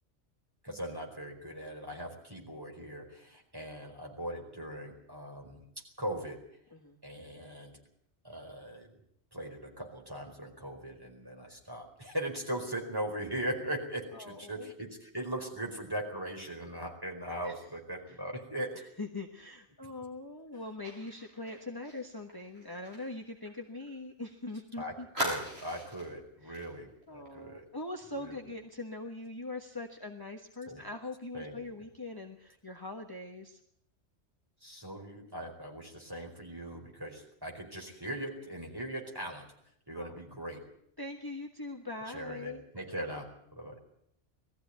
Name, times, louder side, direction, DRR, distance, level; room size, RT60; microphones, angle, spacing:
voice 1, 0.6-6.4 7.0-7.7 8.2-8.9 9.3-18.8 19.8-19.9 24.8-27.7 28.2-28.4 30.7-30.8 31.3-31.6 34.6-39.5 39.9-40.7 42.1-43.8, right 1 dB, 20° right, 1 dB, 4.7 m, -40 dB
voice 2, 14.1-14.7 17.4-17.5 18.1-18.2 18.7-25.1 26.4-26.6 27.1-33.6 39.9-40.1 41.0-42.6, left 2 dB, 20° left, 2 dB, 1.4 m, -42 dB
Fire, 20.8-24.3 24.5-24.6 25.1-26.1 26.5-26.7 27.0-27.3, equal, 65° right, 6.8 m, -40 dB
20.0 x 14.5 x 9.5 m, 0.71 s
omnidirectional pair, 1.2 m